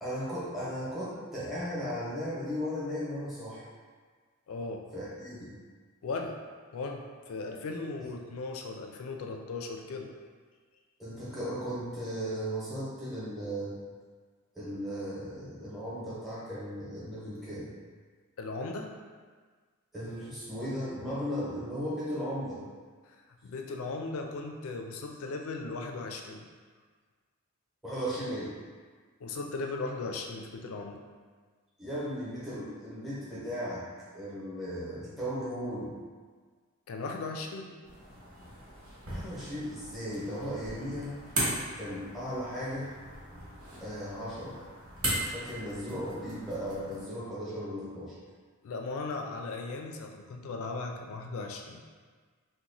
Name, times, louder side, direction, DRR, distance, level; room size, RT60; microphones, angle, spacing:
voice 1, 0.0-3.6 4.9-5.5 11.0-13.7 14.5-17.7 19.9-22.6 27.8-28.5 31.8-33.8 34.1-35.9 39.1-41.1 41.7-42.9 43.8-44.6 45.3-48.1, equal, ahead, -9 dB, 0.8 m, -36 dB
voice 2, 4.5-4.8 6.0-6.4 6.7-10.1 18.4-18.9 23.4-26.4 29.2-31.0 36.9-37.7 48.6-51.8, left 3 dB, 65° left, 3 dB, 0.4 m, -37 dB
sound 1, 37.8-47.0, right 1 dB, 70° right, 1.2 m, -38 dB
2.9 x 2.1 x 3.8 m, 1.5 s
head